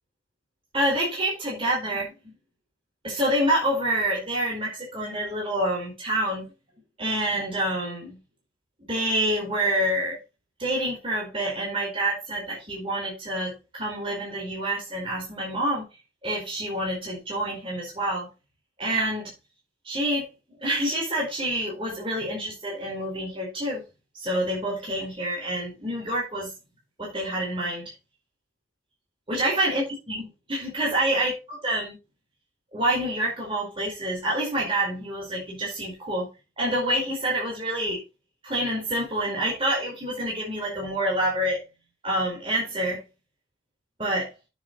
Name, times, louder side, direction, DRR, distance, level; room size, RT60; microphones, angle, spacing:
voice 1, 0.7-2.3 3.0-6.5 7.0-8.2 8.8-10.2 10.6-15.9 16.2-18.3 18.8-19.3 19.8-20.3 20.6-23.8 24.1-26.5 27.0-27.9 29.3-32.0 32.7-36.3 36.6-38.0 38.4-41.6 42.0-43.0 44.0-44.3, right 1 dB, 30° right, -3 dB, 4.6 m, -27 dB
9.5 x 7.3 x 4.1 m, 0.28 s
head